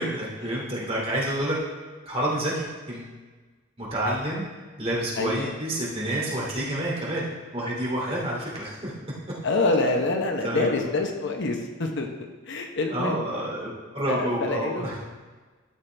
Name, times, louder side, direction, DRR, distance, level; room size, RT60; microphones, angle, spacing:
voice 1, 0.0-1.6 2.0-3.1 3.8-4.5 4.8-7.3 7.5-8.9 10.4-10.8 12.9-15.0, right 1 dB, 30° right, -4 dB, 2.5 m, -28 dB
voice 2, 5.2-5.5 9.4-12.1 12.5-13.2 14.1-14.9, left 2 dB, 60° left, 3 dB, 1.0 m, -26 dB
12.5 x 6.3 x 3.4 m, 1.3 s
head